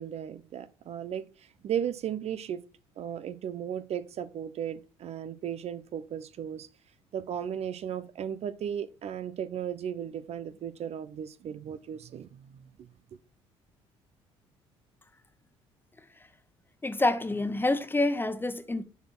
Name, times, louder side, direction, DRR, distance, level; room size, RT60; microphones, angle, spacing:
voice 1, 0.0-2.6 3.0-6.7 7.1-12.9, right 9 dB, 50° right, 0.6 m, -36 dB
voice 2, 16.8-18.8, left 2 dB, 15° left, 1.2 m, -27 dB
6.8 x 4.4 x 6.0 m
hypercardioid pair, 60°, 13 cm